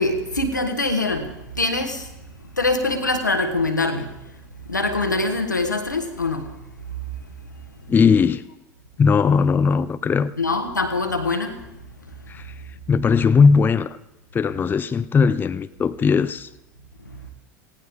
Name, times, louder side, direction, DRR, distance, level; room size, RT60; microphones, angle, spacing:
voice 1, 0.0-2.0 2.6-4.1 4.7-6.5 10.4-11.6, left 2 dB, 90° left, 1.4 m, -23 dB
voice 2, 7.9-8.4 9.0-10.3 12.3-12.5 12.9-14.0 14.3-16.5, left 5 dB, 20° left, 0.5 m, -18 dB
18.5 x 17.0 x 3.7 m
figure-of-eight pair, 75°, 10 cm